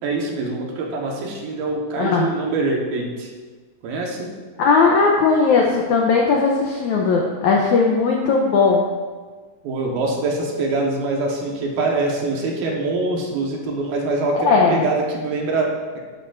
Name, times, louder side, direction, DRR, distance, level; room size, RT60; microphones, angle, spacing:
voice 1, 0.0-3.3 3.8-4.3 9.6-16.0, right 2 dB, 75° right, -1 dB, 2.9 m, -24 dB
voice 2, 2.0-2.3 4.6-8.8 14.3-14.7, left 4 dB, 90° left, -1 dB, 1.7 m, -17 dB
12.0 x 9.2 x 2.6 m, 1.4 s
omnidirectional pair, 4.4 m